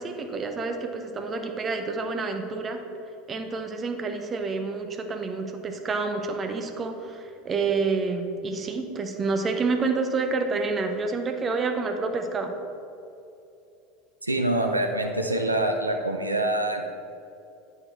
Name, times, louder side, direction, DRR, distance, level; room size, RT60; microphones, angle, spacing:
voice 1, 0.0-2.8 3.3-12.5, right 4 dB, 25° right, 5 dB, 0.7 m, -28 dB
voice 2, 14.2-16.9, right 1 dB, 85° right, 3 dB, 0.5 m, -25 dB
8.5 x 4.9 x 4.4 m, 2.7 s
figure-of-eight pair, 75°, 0 cm